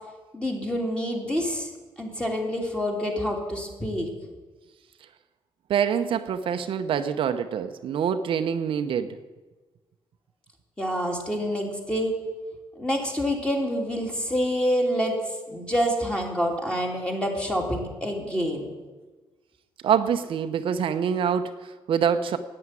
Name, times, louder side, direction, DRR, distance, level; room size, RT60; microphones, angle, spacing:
voice 1, 0.3-1.7 2.0-4.1 10.8-12.2 12.8-15.2 15.5-18.7, equal, 10° left, 3.0 m, -27 dB
voice 2, 5.7-9.2 19.8-22.4, right 8 dB, 65° right, 0.7 m, -25 dB
10.5 x 8.7 x 9.7 m
cardioid pair, 110°, 10 cm